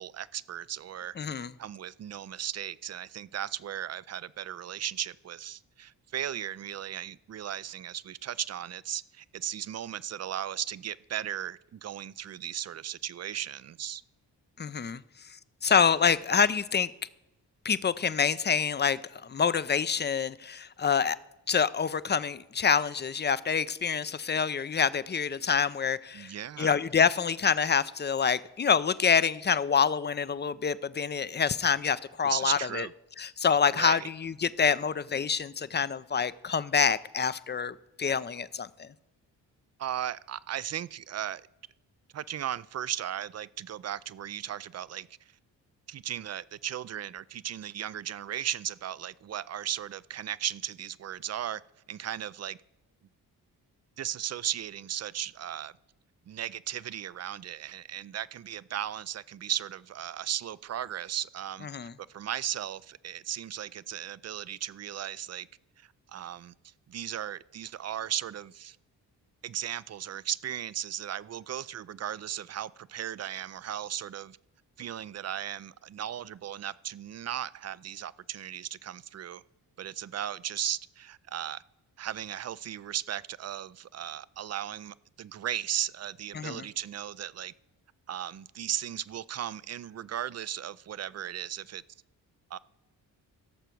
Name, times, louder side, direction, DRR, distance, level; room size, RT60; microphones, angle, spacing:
voice 1, 0.0-14.0 26.1-26.7 32.2-32.9 33.7-34.1 39.8-41.4 42.1-45.1 45.9-51.6 51.9-52.6 54.0-55.7 56.3-61.7 62.1-65.5 65.8-66.5 66.9-68.8 69.4-74.4 74.8-79.4 79.8-81.6 82.0-87.5 88.1-91.8 92.5-92.6, right 10 dB, 35° right, 0.4 m, -36 dB
voice 2, 1.2-1.5 14.6-15.0 15.6-16.9 17.6-21.2 21.5-32.9 33.2-38.9 61.6-61.9 86.3-86.7, left 6 dB, 25° left, 0.5 m, -27 dB
16.0 x 6.8 x 4.6 m
hypercardioid pair, 40°, 47 cm